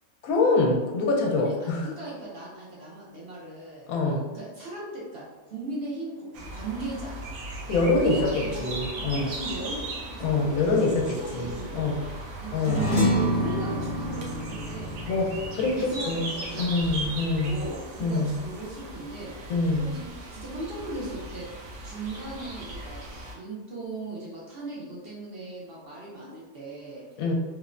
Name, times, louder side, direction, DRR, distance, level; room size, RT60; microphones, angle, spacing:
voice 1, 0.2-1.9 3.9-4.2 7.7-9.3 10.2-12.0 12.5-12.8 15.1-17.5 18.0-18.3 19.5-19.8 27.2-27.3, left 3 dB, 80° left, 0 dB, 1.0 m, -25 dB
voice 2, 1.4-3.9 4.3-7.2 8.0-15.0 15.8-19.3 19.8-20.0 20.3-21.4 21.8-23.0 23.3-27.0, right 2 dB, 55° right, -5 dB, 0.7 m, -38 dB
sound 1, 6.3-23.3, right 1 dB, 90° right, 1.1 m, -38 dB
sound 2, 12.6-17.3, equal, 25° left, 0.8 m, -28 dB
3.1 x 2.0 x 2.4 m, 1.2 s
omnidirectional pair, 1.5 m